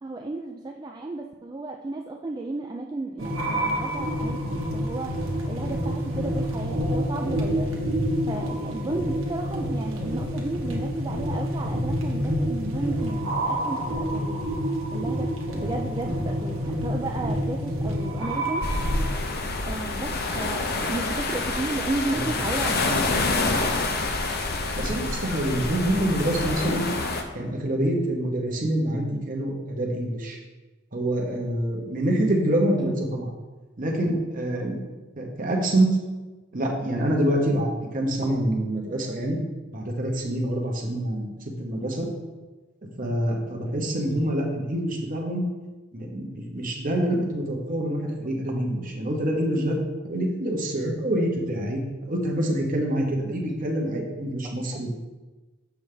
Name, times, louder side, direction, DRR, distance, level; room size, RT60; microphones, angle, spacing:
voice 1, 0.0-5.1 5.4-7.8 8.3-14.4 14.9-18.6 19.7-23.4, right 2 dB, 20° right, 1 dB, 0.3 m, -33 dB
sound 1, 3.2-19.1, equal, 75° right, 1.3 m, -28 dB
sound 2, 18.6-27.2, left 3 dB, 50° left, 0.7 m, -27 dB
voice 2, 24.8-26.8 27.3-30.4 30.9-33.3 33.8-34.8 35.2-36.0 36.5-39.4 39.7-42.1 43.0-45.4 45.9-49.8 50.0-54.9, right 1 dB, 40° right, 0 dB, 1.2 m, -26 dB
7.1 x 5.7 x 3.4 m, 1.2 s
head